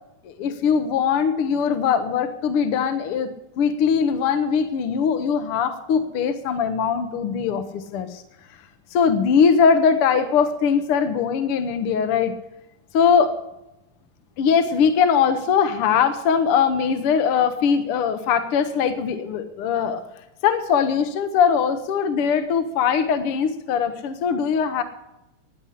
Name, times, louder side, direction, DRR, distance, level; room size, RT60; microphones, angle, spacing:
voice 1, 0.2-3.3 3.6-8.2 8.9-12.3 12.9-13.3 14.4-24.8, left 6 dB, 65° left, 9 dB, 1.4 m, -21 dB
11.5 x 9.8 x 9.9 m, 0.89 s
omnidirectional pair, 3.6 m